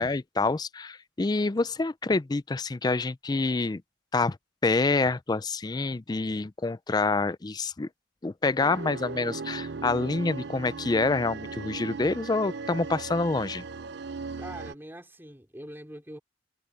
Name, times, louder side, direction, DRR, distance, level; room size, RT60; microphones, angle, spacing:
voice 1, 0.0-3.8 4.1-4.4 4.6-7.9 8.2-13.6, left 3 dB, 20° left, 0.4 m, -27 dB
sound 1, 8.6-14.7, right 4 dB, 60° right, 0.6 m, -38 dB
voice 2, 14.4-16.2, right 1 dB, 10° right, 3.4 m, -43 dB
head